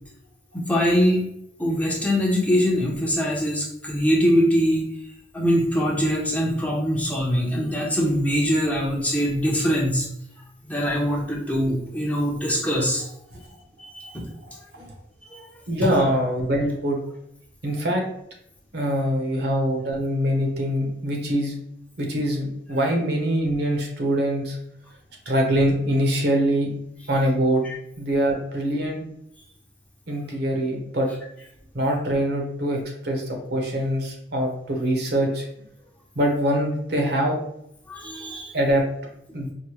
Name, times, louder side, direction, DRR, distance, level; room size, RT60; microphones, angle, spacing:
voice 1, 0.5-1.2 1.6-4.9 5.3-10.1 10.6-13.0 14.0-14.2 15.3-15.4 27.6-27.8 37.9-38.5, equal, 10° left, -3 dB, 0.6 m, -23 dB
voice 2, 15.7-17.0 17.6-18.0 18.7-21.5 22.0-24.6 25.3-26.7 27.1-27.7 28.0-29.0 30.1-31.1 31.7-32.8 33.0-33.2 33.5-35.4 36.2-37.3 38.5-38.8 39.3-39.5, equal, 60° right, 2 dB, 0.8 m, -23 dB
4.6 x 2.1 x 2.9 m, 0.74 s
head